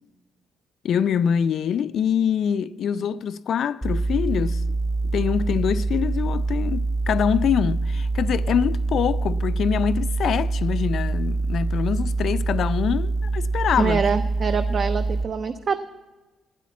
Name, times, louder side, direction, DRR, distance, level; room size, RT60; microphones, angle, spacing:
voice 1, 0.8-4.6 5.1-14.0, left 8 dB, 65° left, 0.4 m, -24 dB
sound 1, 3.8-15.2, right 3 dB, 10° right, 0.9 m, -25 dB
voice 2, 13.8-15.8, right 6 dB, 50° right, 0.5 m, -25 dB
9.3 x 9.2 x 8.4 m
cardioid pair, 90°, 0 cm